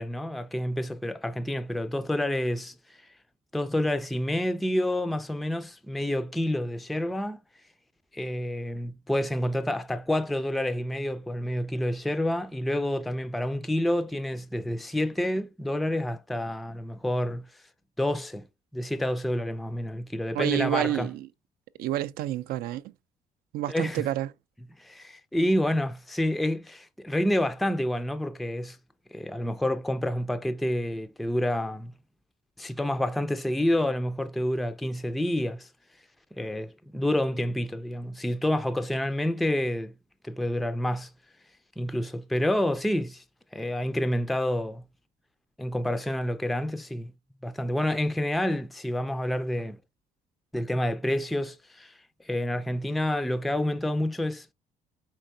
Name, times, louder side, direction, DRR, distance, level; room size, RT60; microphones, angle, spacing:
voice 1, 0.0-2.7 3.5-7.4 8.1-17.5 18.0-18.4 18.7-21.1 23.7-24.0 24.8-28.8 29.1-31.9 32.6-35.7 36.4-39.9 40.2-41.1 41.8-43.2 43.5-44.8 45.6-47.1 47.4-49.8 50.5-51.9 52.3-54.5, left 1 dB, ahead, 0.3 m, -28 dB
voice 2, 20.3-21.3 21.8-22.9 23.5-24.3, right 13 dB, 75° right, 0.4 m, -29 dB
4.5 x 3.8 x 2.6 m
cardioid pair, 100°, 15 cm